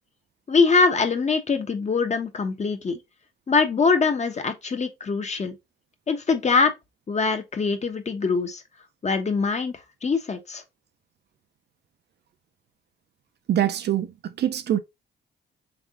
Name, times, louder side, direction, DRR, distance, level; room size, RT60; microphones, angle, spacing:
voice 1, 0.5-3.0 3.5-5.5 6.1-6.7 7.1-8.6 9.0-9.7 10.0-10.6, left 4 dB, 35° left, 1.1 m, -23 dB
voice 2, 13.5-14.8, right 11 dB, 60° right, 0.6 m, -24 dB
3.6 x 3.5 x 3.6 m
cardioid pair, 90°, 20 cm